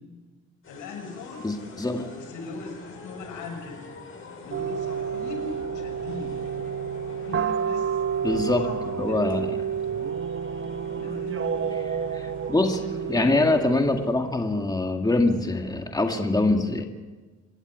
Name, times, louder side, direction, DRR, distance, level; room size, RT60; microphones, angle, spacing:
sound 1, 0.6-14.9, left 3 dB, 45° left, 7.9 m, -45 dB
voice 1, 0.7-1.4 2.1-3.8 4.4-6.4 7.2-9.4 10.9-11.6 12.6-13.1, left 4 dB, 85° left, 2 dB, 6.5 m, -40 dB
voice 2, 1.4-2.1 8.2-8.7 9.0-9.6 11.8-12.8 13.1-16.9, left 2 dB, 15° left, 4 dB, 2.1 m, -24 dB
sound 2, 4.5-14.1, right 7 dB, 40° right, 1.0 m, -30 dB
27.5 x 11.5 x 9.6 m, 1.3 s
cardioid pair, 90°, 30 cm